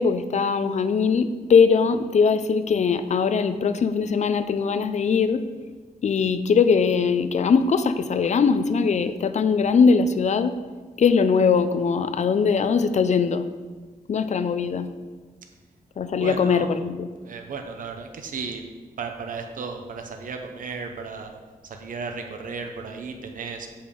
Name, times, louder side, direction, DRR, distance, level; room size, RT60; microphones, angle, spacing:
voice 1, 0.0-5.4 6.0-10.5 11.0-13.5 14.1-14.9 16.0-17.1, left 5 dB, 45° left, 10 dB, 0.4 m, -21 dB
voice 2, 16.2-16.7 17.2-18.6 19.0-21.3 21.6-23.7, right 4 dB, 60° right, 4 dB, 0.7 m, -34 dB
6.7 x 5.4 x 5.2 m, 1.4 s
wide cardioid pair, 150°, 16 cm